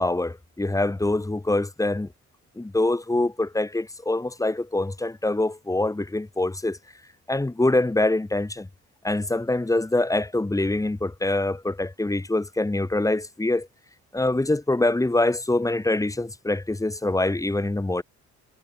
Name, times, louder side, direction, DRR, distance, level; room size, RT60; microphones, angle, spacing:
voice 1, 0.0-2.1 2.6-6.8 7.3-8.7 9.0-13.7 14.1-18.0, left 2 dB, 10° left, 1.5 m, -24 dB
cardioid pair, 90°, 30 cm